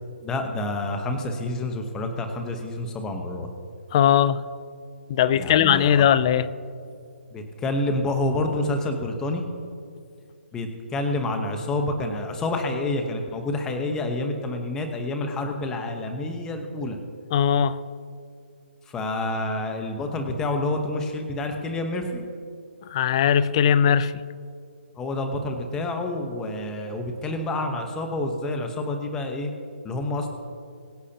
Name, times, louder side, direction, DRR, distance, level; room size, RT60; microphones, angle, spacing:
voice 1, 0.2-3.5 5.3-6.1 7.3-9.4 10.5-17.0 18.9-22.2 24.9-29.5 29.8-30.3, left 2 dB, 10° left, 5 dB, 1.0 m, -28 dB
voice 2, 3.9-4.4 5.1-6.5 17.3-17.8 22.9-24.1, left 9 dB, 25° left, 16 dB, 0.4 m, -19 dB
22.0 x 8.2 x 2.9 m, 2.3 s
hypercardioid pair, 165°, 6 cm